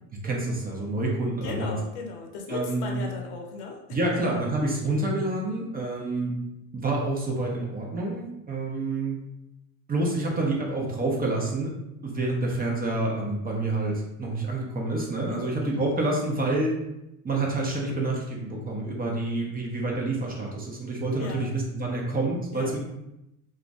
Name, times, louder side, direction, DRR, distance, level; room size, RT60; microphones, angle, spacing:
voice 1, 0.2-1.7 2.5-3.0 3.9-6.3 6.7-9.2 9.9-11.7 12.0-16.7 17.2-22.8, right 2 dB, 20° right, -1 dB, 0.6 m, -28 dB
voice 2, 1.4-3.8 4.1-4.2 15.3-15.6 21.2-21.5 22.5-22.8, left 4 dB, 75° left, 1 dB, 0.7 m, -37 dB
2.4 x 2.1 x 3.4 m, 0.87 s
supercardioid pair, 100°, 45 cm